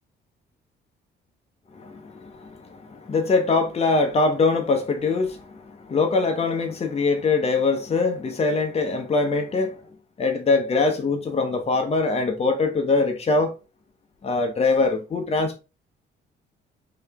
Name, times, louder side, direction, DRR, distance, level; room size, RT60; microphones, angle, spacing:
voice 1, 1.7-9.8 10.2-13.5 14.2-15.6, left 3 dB, 30° left, 0.8 m, -23 dB
3.1 x 2.9 x 3.5 m
cardioid pair, 90°, 20 cm